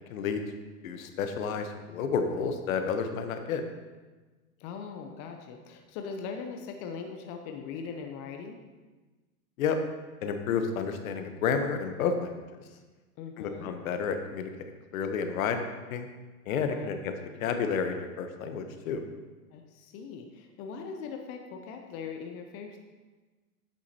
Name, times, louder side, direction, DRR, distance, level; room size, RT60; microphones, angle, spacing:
voice 1, 0.8-3.6 9.6-9.8 10.2-12.4 13.4-16.1 16.5-17.1 17.4-19.0, left 6 dB, 65° left, 7 dB, 0.9 m, -31 dB
voice 2, 4.6-8.6 13.2-13.7 16.7-16.9 19.5-22.8, left 5 dB, 30° left, 4 dB, 0.6 m, -40 dB
8.3 x 6.3 x 2.8 m, 1.3 s
hypercardioid pair, 120°, 46 cm